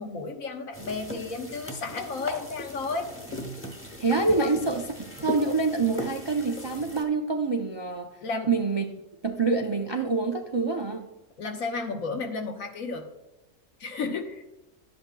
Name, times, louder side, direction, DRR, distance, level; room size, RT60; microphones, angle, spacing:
voice 1, 0.0-3.1 4.4-4.6 8.2-8.5 11.4-13.1 13.8-14.6, left 4 dB, 85° left, 3 dB, 1.5 m, -33 dB
sound 1, 0.7-7.0, left 1 dB, 10° left, 1.0 m, -38 dB
voice 2, 4.0-4.8 5.2-8.1 8.5-8.8 9.2-11.1, right 4 dB, 45° right, 2 dB, 0.3 m, -26 dB
11.5 x 7.8 x 2.3 m, 0.95 s
omnidirectional pair, 1.4 m